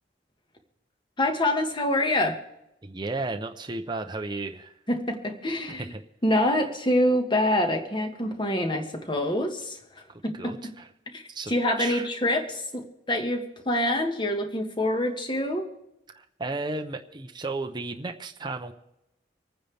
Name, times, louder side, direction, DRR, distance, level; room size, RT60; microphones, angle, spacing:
voice 1, 1.2-2.4 4.9-5.9 6.2-9.8 10.2-10.7 11.1-15.7, left 1 dB, 25° left, 4 dB, 1.7 m, -26 dB
voice 2, 2.8-4.7 5.7-6.0 10.1-10.9 11.3-11.5 11.8-12.1 16.1-18.7, right 3 dB, 25° right, 5 dB, 0.8 m, -34 dB
26.5 x 9.6 x 3.5 m, 0.87 s
head